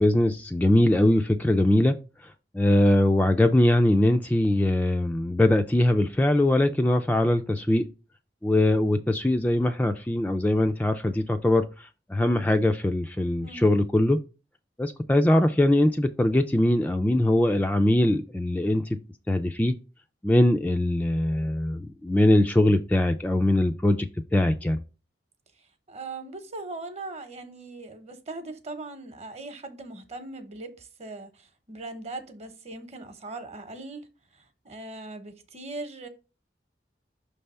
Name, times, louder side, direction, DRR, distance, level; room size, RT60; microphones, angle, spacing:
voice 1, 0.0-2.0 2.5-7.8 8.4-11.6 12.1-14.2 14.8-18.8 19.3-19.7 20.2-24.1 24.3-24.8, left 1 dB, 10° left, 0.3 m, -22 dB
voice 2, 13.4-13.8 25.9-34.0 34.6-36.1, right 2 dB, 40° right, 0.9 m, -39 dB
5.9 x 3.4 x 5.4 m
head